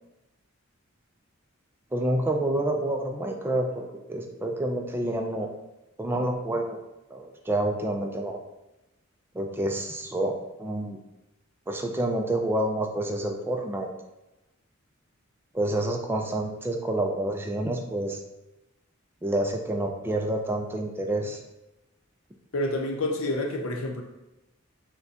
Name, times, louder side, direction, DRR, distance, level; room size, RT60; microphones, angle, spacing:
voice 1, 1.9-5.5 6.0-6.8 7.1-8.4 9.3-11.0 11.7-13.9 15.5-18.2 19.2-21.4, right 1 dB, 10° right, 2 dB, 0.3 m, -28 dB
voice 2, 22.5-24.0, left 1 dB, 75° left, 2 dB, 0.7 m, -28 dB
6.5 x 2.2 x 2.8 m, 0.99 s
head